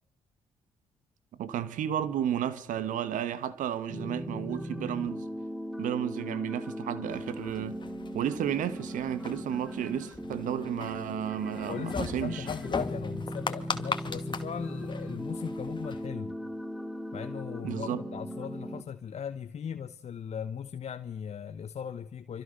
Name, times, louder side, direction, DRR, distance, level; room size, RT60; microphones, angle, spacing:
voice 1, 1.4-5.3 5.8-7.8 8.1-12.5 17.6-18.0, right 10 dB, 70° right, 1.4 m, -32 dB
sound 1, 3.9-18.8, equal, ahead, 2.7 m, -38 dB
sound 2, 7.1-16.1, left 4 dB, 35° left, 2.4 m, -40 dB
voice 2, 11.7-16.4 17.1-22.4, left 7 dB, 50° left, 1.1 m, -38 dB
27.0 x 25.0 x 6.7 m
hypercardioid pair, 45°, 14 cm